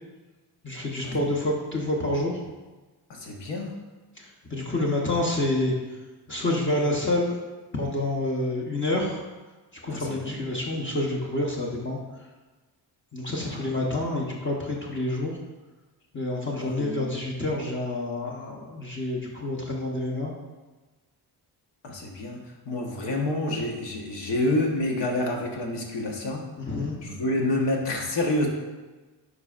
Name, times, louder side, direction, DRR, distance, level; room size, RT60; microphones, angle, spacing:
voice 1, 0.6-2.4 4.2-5.7 6.3-7.4 7.7-9.2 9.8-12.0 13.1-15.3 16.1-20.3 26.7-27.0, left 1 dB, 30° left, -3 dB, 0.9 m, -28 dB
voice 2, 3.1-3.7 9.9-10.3 13.4-13.6 16.6-17.1 21.8-22.4 22.7-26.4 27.0-28.5, left 1 dB, 85° left, 0 dB, 1.2 m, -28 dB
9.6 x 5.0 x 2.5 m, 1.2 s
wide cardioid pair, 135°, 42 cm